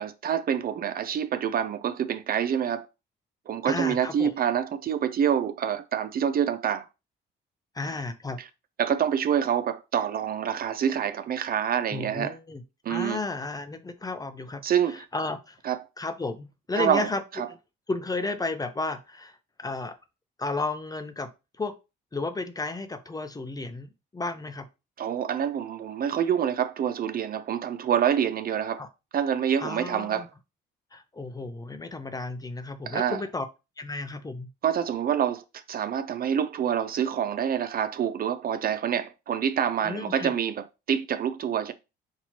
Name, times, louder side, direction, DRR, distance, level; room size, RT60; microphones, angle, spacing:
voice 1, 0.0-2.9 3.5-6.8 8.8-12.4 12.9-13.2 14.6-15.0 15.6-15.8 16.8-17.1 17.4-17.5 25.0-28.8 29.1-30.3 32.9-33.2 34.6-41.7, right 8 dB, 50° right, 0.4 m, -27 dB
voice 2, 3.6-4.3 7.7-8.4 11.9-12.6 12.9-14.6 14.9-15.6 16.0-17.2 17.9-20.0 20.4-21.3 21.6-21.7 22.1-23.9 24.1-24.7 28.8-28.9 29.6-30.3 30.9-33.5 33.8-34.5 39.8-40.3, left 3 dB, 20° left, 0.6 m, -33 dB
4.4 x 2.9 x 2.9 m
cardioid pair, 90°, 20 cm